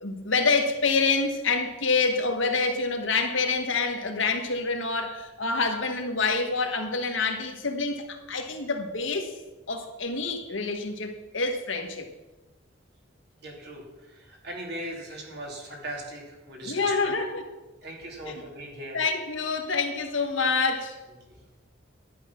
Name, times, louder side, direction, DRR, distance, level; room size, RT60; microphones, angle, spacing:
voice 1, 0.0-9.3 9.7-12.1 16.6-17.5 18.2-18.3 18.9-21.0, left 4 dB, 85° left, 4 dB, 1.8 m, -27 dB
voice 2, 13.4-17.1 17.8-19.0 21.3-21.4, right 1 dB, 60° right, 0 dB, 3.2 m, -39 dB
12.0 x 9.8 x 6.1 m, 1.1 s
head